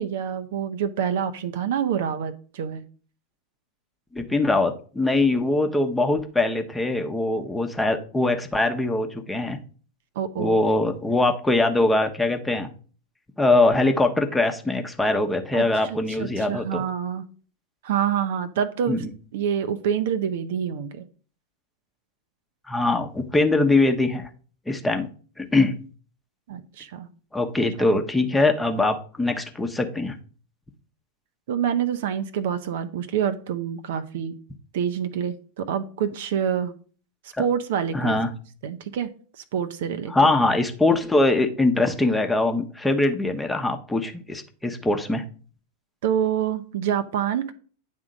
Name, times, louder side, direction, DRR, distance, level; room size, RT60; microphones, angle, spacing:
voice 1, 0.0-2.8 10.2-10.6 15.5-17.3 17.8-19.0 19.3-21.0 26.5-27.1 31.5-34.4 34.7-36.7 37.4-38.2 38.6-39.1 39.5-40.3 46.0-47.5, right 8 dB, 55° right, 10 dB, 0.6 m, -27 dB
voice 2, 4.1-9.6 10.4-12.7 13.4-16.8 18.9-19.1 22.7-24.3 24.7-25.1 25.4-25.8 27.3-30.1 37.4-37.5 37.9-38.3 40.1-45.2, left 2 dB, 5° left, 5 dB, 0.9 m, -22 dB
9.5 x 3.7 x 5.1 m, 0.41 s
figure-of-eight pair, 90°, 0 cm